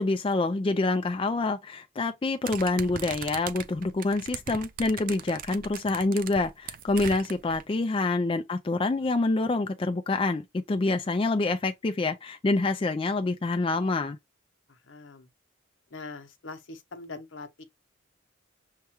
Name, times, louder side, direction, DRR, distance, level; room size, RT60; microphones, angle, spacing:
voice 1, 0.0-14.2, left 2 dB, 25° left, 0.3 m, -27 dB
sound 1, 2.5-7.6, right 7 dB, 45° right, 0.4 m, -39 dB
voice 2, 14.7-15.3 15.9-17.6, left 3 dB, 75° left, 0.8 m, -43 dB
6.5 x 2.3 x 2.8 m
head